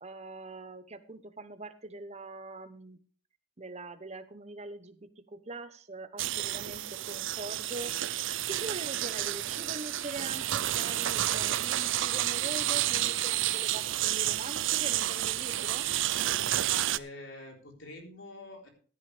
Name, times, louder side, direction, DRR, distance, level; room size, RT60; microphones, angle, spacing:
voice 1, 0.0-3.0 3.6-7.9 8.5-15.9, right 2 dB, 30° right, 11 dB, 1.0 m, -43 dB
sound 1, 6.2-17.0, right 13 dB, 65° right, 0.5 m, -30 dB
sound 2, 7.7-16.5, right 1 dB, 15° right, 2.8 m, -54 dB
voice 2, 16.3-18.7, left 2 dB, 65° left, 2 dB, 3.9 m, -46 dB
15.0 x 10.5 x 3.4 m, 0.43 s
head